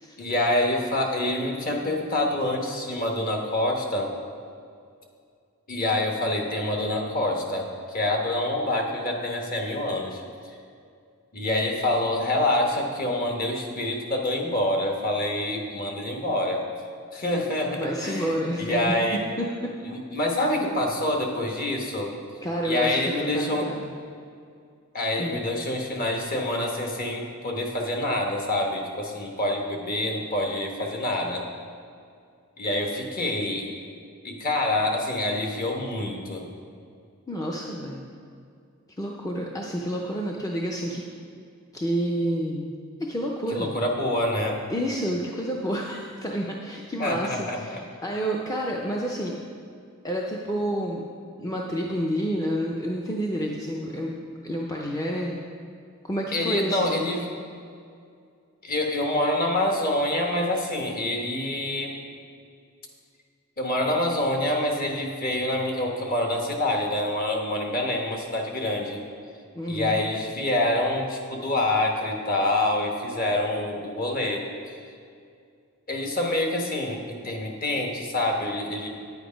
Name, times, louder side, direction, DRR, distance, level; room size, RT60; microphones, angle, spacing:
voice 1, 0.2-4.1 5.7-10.2 11.3-16.6 17.1-19.2 19.8-22.1 22.6-23.7 24.9-31.5 32.6-33.7 34.2-36.4 43.5-44.6 47.0-47.8 56.3-57.3 58.6-62.0 63.6-69.0 69.7-74.4 75.9-78.9, left 1 dB, 40° left, 1 dB, 1.3 m, -26 dB
voice 2, 17.8-18.9 19.4-19.7 22.4-23.0 23.3-23.9 25.2-25.4 37.3-38.0 39.0-41.0 41.7-42.7 43.0-43.8 44.7-49.4 50.0-51.0 51.4-54.1 54.4-55.4 56.0-57.0 69.5-70.0, equal, 15° left, -1 dB, 0.6 m, -29 dB
9.6 x 8.2 x 5.1 m, 2.3 s
head